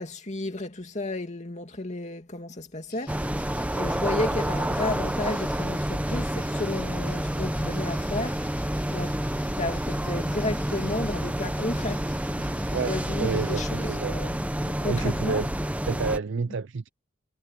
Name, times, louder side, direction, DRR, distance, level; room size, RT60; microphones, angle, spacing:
voice 1, 0.0-3.4 3.8-9.2 9.6-12.1 12.4-15.4, left 2 dB, 35° left, 2.6 m, -33 dB
sound 1, 2.9-13.6, left 7 dB, 55° left, 4.6 m, -52 dB
sound 2, 3.1-16.2, right 1 dB, 5° right, 0.9 m, -29 dB
voice 2, 12.7-14.2 14.8-15.5 15.8-16.9, right 4 dB, 60° right, 0.5 m, -29 dB
head